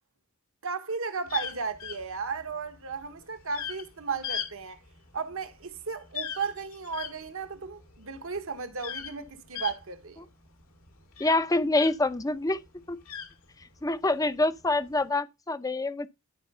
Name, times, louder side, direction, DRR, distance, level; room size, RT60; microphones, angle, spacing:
voice 1, 0.6-4.8 5.1-10.2, right 5 dB, 70° right, 1.4 m, -35 dB
sound 1, 1.3-12.2 12.6-13.9 14.6-15.0, left 8 dB, 75° left, 2.3 m, -39 dB
voice 2, 11.2-12.6 12.9-13.0 13.8-16.1, left 2 dB, 15° left, 0.7 m, -26 dB
12.5 x 4.6 x 5.6 m
head